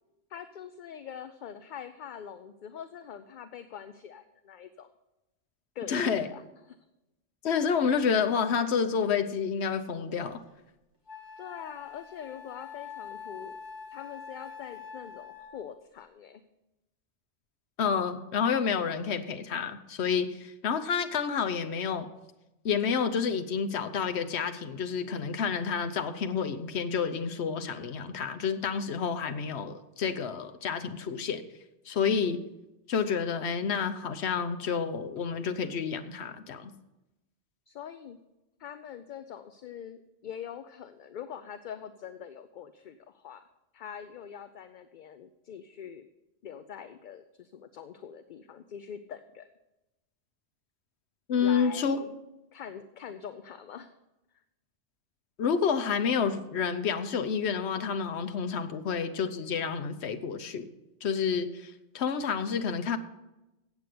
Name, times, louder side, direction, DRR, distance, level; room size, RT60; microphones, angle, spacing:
voice 1, 0.3-4.9 5.7-6.8 11.4-13.6 13.9-16.4 37.7-38.2 38.6-43.5 43.7-46.1 46.4-49.5 51.4-52.2 52.5-53.9, left 8 dB, 55° left, 11 dB, 0.6 m, -44 dB
voice 2, 5.9-6.3 7.4-10.4 17.8-22.1 22.6-31.4 31.9-32.4 32.9-36.7 51.3-52.0 55.4-60.7 61.0-63.0, left 6 dB, 75° left, 8 dB, 1.1 m, -29 dB
Wind instrument woodwind instrument, 10.4-10.5 11.1-15.7, left 6 dB, 20° left, 2.1 m, -45 dB
8.3 x 8.0 x 7.7 m, 0.96 s
omnidirectional pair, 1.1 m